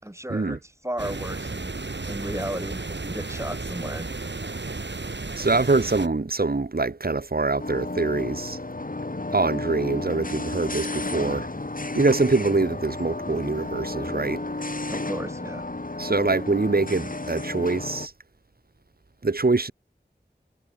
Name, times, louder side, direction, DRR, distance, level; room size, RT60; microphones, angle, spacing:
voice 1, 0.0-1.7 2.1-4.1 14.9-15.7, right 1 dB, 15° right, 4.8 m, -34 dB
sound 1, 1.0-6.1, right 3 dB, 80° right, 3.1 m, -33 dB
voice 2, 5.3-8.6 9.3-11.5 11.9-14.4 16.0-18.1 19.2-19.7, right 3 dB, 55° right, 1.5 m, -24 dB
sound 2, 7.6-18.1, left 2 dB, 50° left, 2.7 m, -32 dB
wide cardioid pair, 45°, 18 cm